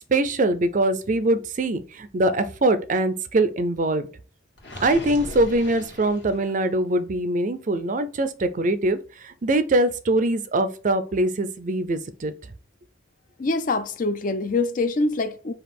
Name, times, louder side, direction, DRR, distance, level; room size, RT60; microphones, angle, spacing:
voice 1, 0.1-4.1 4.8-12.3, right 2 dB, 40° right, 0.4 m, -23 dB
Gurgling, 4.6-6.7, left 1 dB, 55° left, 1.5 m, -39 dB
voice 2, 13.4-15.5, left 3 dB, 40° left, 0.4 m, -24 dB
5.2 x 2.4 x 4.2 m
head